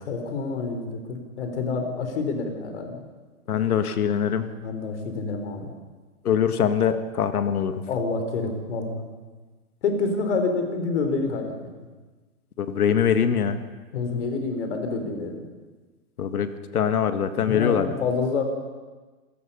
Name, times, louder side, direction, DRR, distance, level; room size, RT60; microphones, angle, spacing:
voice 1, 0.1-3.0 4.6-5.7 7.9-9.0 9.8-11.7 13.9-15.5 17.4-18.4, left 4 dB, 50° left, 6 dB, 3.9 m, -27 dB
voice 2, 3.5-4.5 6.2-7.8 12.6-13.6 16.2-17.9, left 8 dB, 80° left, 10 dB, 1.8 m, -23 dB
27.5 x 17.5 x 5.6 m, 1.3 s
hypercardioid pair, 165°, 44 cm